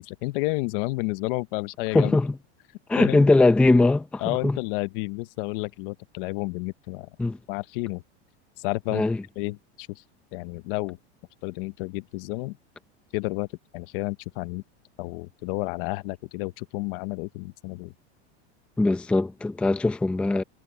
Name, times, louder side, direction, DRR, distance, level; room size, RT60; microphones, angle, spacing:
voice 1, 0.0-2.2 3.0-3.3 4.2-7.1 7.5-8.0 8.6-9.0 9.4-10.0 10.3-11.0 11.4-12.6 13.1-13.5 13.7-14.6 15.0-17.9, left 22 dB, 50° left, 0.8 m, -31 dB
voice 2, 1.9-2.4 2.9-4.6 7.2-7.4 8.9-9.2 18.8-20.4, left 2 dB, 5° left, 0.6 m, -21 dB
supercardioid pair, 160°, 34 cm